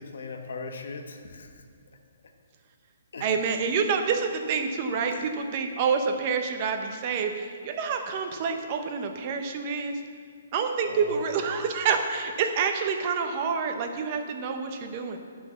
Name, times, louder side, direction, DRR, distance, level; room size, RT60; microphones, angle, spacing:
voice 1, 0.0-1.6 3.1-3.3 5.1-5.3 10.9-11.4, left 4 dB, 70° left, 4 dB, 1.3 m, -39 dB
voice 2, 3.2-10.0 10.5-15.2, right 5 dB, 30° right, 5 dB, 0.9 m, -28 dB
11.0 x 6.0 x 7.1 m, 2.1 s
hypercardioid pair, 170°, 0 cm